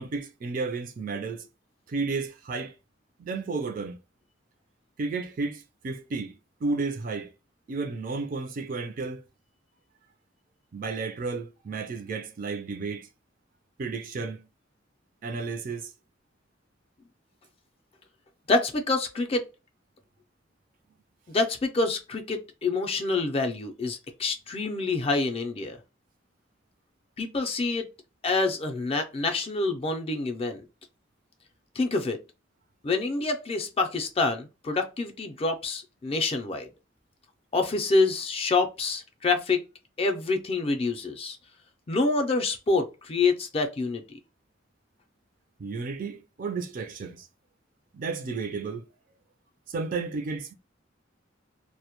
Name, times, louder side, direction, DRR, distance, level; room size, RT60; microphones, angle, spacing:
voice 1, 0.0-1.5 1.9-2.7 3.2-4.0 5.0-7.3 7.7-9.2 10.7-13.1 13.8-14.4 15.2-15.9 45.6-47.3 47.9-48.9 49.7-50.5, right 4 dB, 45° right, 0.4 m, -32 dB
voice 2, 18.5-19.4 21.3-25.8 27.2-27.9 28.2-30.6 31.8-32.2 32.8-36.7 37.5-39.6 40.0-41.4 41.9-44.2, left 3 dB, 30° left, 0.4 m, -27 dB
2.1 x 2.0 x 2.8 m
head